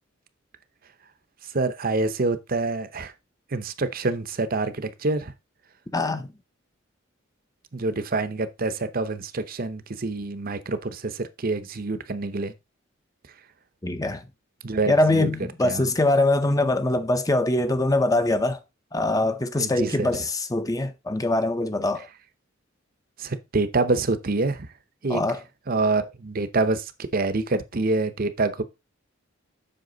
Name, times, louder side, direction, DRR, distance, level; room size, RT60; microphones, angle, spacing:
voice 1, 1.5-3.1 3.5-5.3 7.7-12.5 14.6-15.3 15.6-15.9 19.6-20.2 23.2-24.7 25.0-25.2 25.7-28.6, right 3 dB, 45° right, 0.8 m, -26 dB
voice 2, 5.9-6.3 13.8-14.3 14.9-18.6 18.9-22.1 25.1-25.4, left 2 dB, 15° left, 0.6 m, -23 dB
7.9 x 5.8 x 3.9 m
head